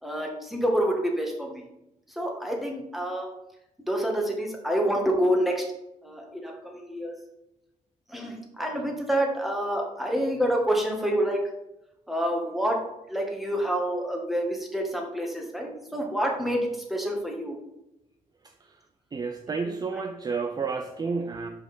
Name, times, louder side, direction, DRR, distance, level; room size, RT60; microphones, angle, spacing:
voice 1, 0.0-1.6 2.1-3.3 3.8-5.6 6.0-7.1 8.1-11.4 12.1-17.6, equal, ahead, 0 dB, 1.6 m, -27 dB
voice 2, 19.1-21.5, right 4 dB, 30° right, 6 dB, 0.5 m, -30 dB
5.7 x 4.9 x 6.0 m, 0.89 s
cardioid pair, 125°, 14 cm